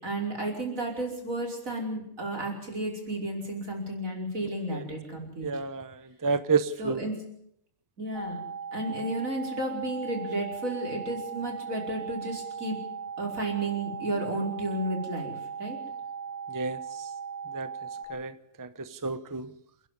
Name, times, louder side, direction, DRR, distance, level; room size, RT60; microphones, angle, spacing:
voice 1, 0.0-5.5 6.8-7.1 8.0-8.4 8.7-12.8 13.2-15.8, right 1 dB, 80° right, 0 dB, 5.6 m, -32 dB
voice 2, 5.4-5.9 6.2-7.0 16.5-16.8 17.5-17.7 18.1-18.3 18.6-18.7 19.0-19.5, right 4 dB, 15° right, 12 dB, 0.8 m, -28 dB
sound 1, 8.1-18.1, right 6 dB, 5° left, 7.0 m, -38 dB
28.5 x 11.0 x 9.6 m, 0.72 s
omnidirectional pair, 1.4 m